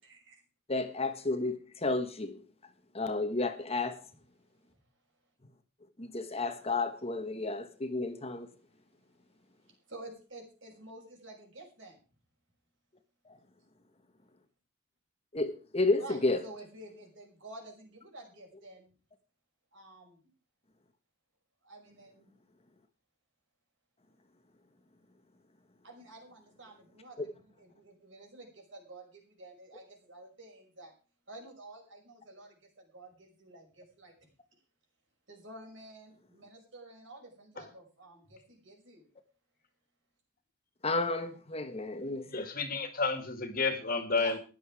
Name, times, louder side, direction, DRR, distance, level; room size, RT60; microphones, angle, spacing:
voice 1, 0.0-0.4 9.9-12.0 16.0-18.9 19.7-20.3 21.6-22.3 25.8-30.9 31.3-34.1 35.3-39.1 44.1-44.4, right 2 dB, 65° right, 5.8 m, -50 dB
voice 2, 0.7-2.4 2.9-4.0 6.0-8.5 13.3-13.4 15.3-16.4 40.8-42.5, left 2 dB, 30° left, 1.2 m, -32 dB
voice 3, 42.3-44.4, left 4 dB, 45° left, 2.1 m, -31 dB
14.0 x 11.0 x 4.8 m
head